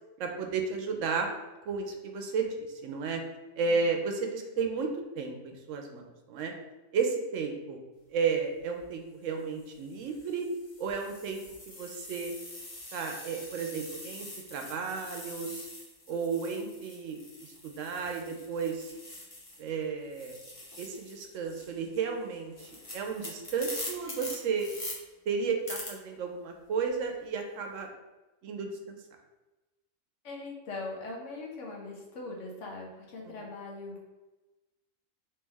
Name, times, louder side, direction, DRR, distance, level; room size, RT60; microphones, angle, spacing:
voice 1, 0.2-1.3 1.7-3.2 3.6-6.5 6.9-7.8 8.1-10.5 10.8-12.3 12.9-15.7 16.1-18.9 19.6-20.4 20.8-24.7 25.3-27.9 28.4-29.0 33.3-33.4, right 5 dB, 75° right, 3 dB, 0.9 m, -33 dB
sound 1, 8.6-8.8 9.6-19.7 20.0-24.9 25.7-25.9, left 1 dB, 30° left, 0.8 m, -44 dB
voice 2, 30.2-34.1, left 3 dB, 70° left, -1 dB, 1.1 m, -41 dB
3.2 x 3.1 x 3.4 m, 1.1 s
omnidirectional pair, 1.4 m